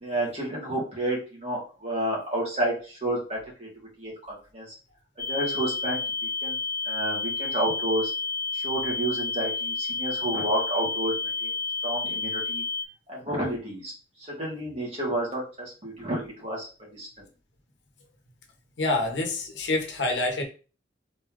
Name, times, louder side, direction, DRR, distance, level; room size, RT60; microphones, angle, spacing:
voice 1, 0.0-3.7 4.0-4.1 4.5-4.7 5.3-6.0 6.4-6.6 6.8-8.1 8.5-11.1 11.4-11.5 11.8-12.6 13.1-13.9 14.3-16.7 16.9-17.1, right 1 dB, 35° right, -4 dB, 2.1 m, -30 dB
sound 1, 5.2-12.8, left 4 dB, 10° left, 0.7 m, -30 dB
voice 2, 18.8-20.4, left 2 dB, 75° left, 2 dB, 1.2 m, -27 dB
4.1 x 3.3 x 3.8 m, 0.35 s
head